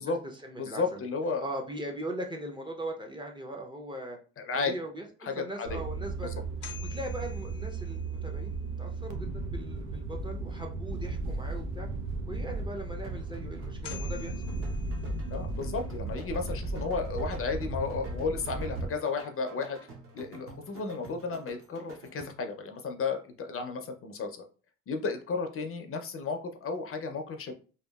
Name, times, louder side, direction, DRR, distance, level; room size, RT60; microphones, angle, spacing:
voice 1, 0.0-1.0 1.4-4.2 4.5-11.9 12.3-14.3, right 1 dB, 15° right, 1 dB, 0.5 m, -40 dB
voice 2, 0.6-1.4 4.4-4.7 5.2-5.8 6.2-6.3 15.3-19.8 20.1-24.4 24.9-27.5, left 4 dB, 45° left, 5 dB, 0.5 m, -33 dB
sound 1, 5.7-18.9, right 3 dB, 85° right, 0.6 m, -35 dB
sound 2, 6.4-8.5 13.4-13.5 13.8-15.7, left 9 dB, 90° left, 0.6 m, -48 dB
sound 3, 13.0-22.6, right 3 dB, 45° right, 0.8 m, -49 dB
2.8 x 2.3 x 2.2 m, 0.36 s
cardioid pair, 90°, 30 cm